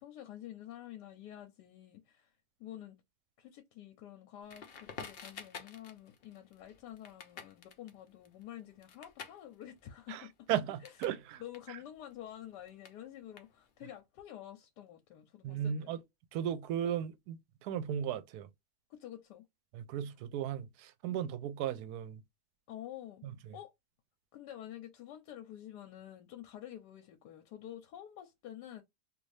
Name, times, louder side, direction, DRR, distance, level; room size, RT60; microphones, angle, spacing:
voice 1, 0.0-2.3 2.6-3.0 3.4-10.5 10.8-10.9 11.4-15.9 18.9-19.5 21.0-21.2 22.7-23.2 23.5-23.7 24.3-28.8, left 12 dB, 85° left, 1.2 m, -49 dB
Crackle, 4.5-11.2 11.5-13.9, left 6 dB, 65° left, 0.6 m, -51 dB
voice 2, 10.1-11.4 15.4-16.0 16.3-18.5 19.7-22.2 23.2-23.5, right 9 dB, 75° right, 1.0 m, -36 dB
2.8 x 2.6 x 3.2 m
omnidirectional pair, 1.8 m